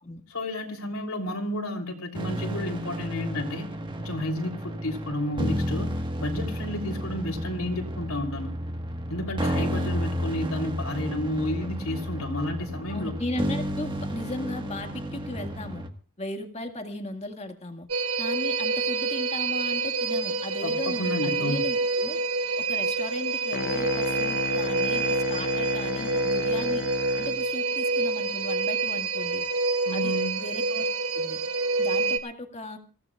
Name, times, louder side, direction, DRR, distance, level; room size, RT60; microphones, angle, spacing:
voice 1, 0.3-3.7 4.0-5.9 6.2-8.5 9.1-13.1 20.6-21.6 29.8-30.4, left 1 dB, 85° left, 2 dB, 3.3 m, -31 dB
sound 1, 2.1-15.9, equal, 25° right, 1.5 m, -32 dB
voice 2, 9.6-9.9 12.9-15.8 16.2-17.9 18.2-22.2 22.6-26.8 27.2-29.4 29.9-30.9 31.1-31.4 31.8-32.8, left 1 dB, 30° left, 5 dB, 1.9 m, -37 dB
sound 2, 17.9-32.2, right 3 dB, 80° right, 1.5 m, -27 dB
sound 3, 23.5-27.5, left 5 dB, 50° left, 0.6 m, -33 dB
25.5 x 16.0 x 2.4 m, 0.35 s
head